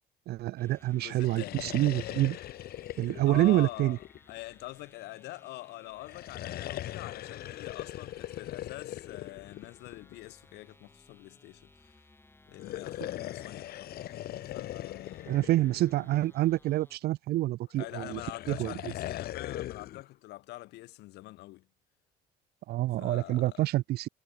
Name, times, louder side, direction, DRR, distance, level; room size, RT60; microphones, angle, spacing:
voice 1, 0.3-2.4 3.0-4.0 15.3-18.2 18.5-18.7 22.7-24.1, right 16 dB, 70° right, 0.9 m, -27 dB
sound 1, 0.6-17.0, left 2 dB, 15° left, 4.0 m, -60 dB
voice 2, 0.9-1.7 3.0-12.1 12.5-15.4 17.8-21.7 22.8-23.6, left 18 dB, 85° left, 2.3 m, -45 dB
sound 2, 1.1-4.7 6.0-10.3 12.5-16.5 17.8-20.1, left 13 dB, 65° left, 1.7 m, -40 dB
cardioid pair, 110°, 17 cm